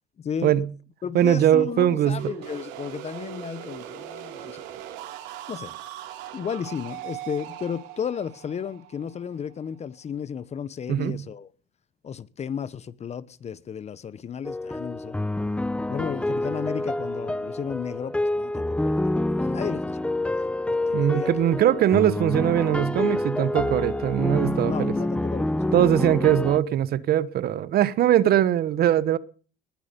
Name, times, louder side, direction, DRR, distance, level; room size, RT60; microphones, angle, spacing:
voice 1, 0.2-0.5 1.0-4.6 5.5-5.7 6.3-11.5 12.0-15.2 15.9-20.5 20.9-21.3 24.4-25.8, left 7 dB, 40° left, 1.1 m, -34 dB
voice 2, 1.1-2.2 10.9-11.2 20.9-25.0 25.7-29.2, right 11 dB, 60° right, 1.2 m, -21 dB
sound 1, 2.2-9.9, right 12 dB, 90° right, 3.1 m, -40 dB
sound 2, 14.4-26.6, left 1 dB, 5° left, 0.7 m, -27 dB
20.0 x 11.0 x 5.3 m
cardioid pair, 105°, 18 cm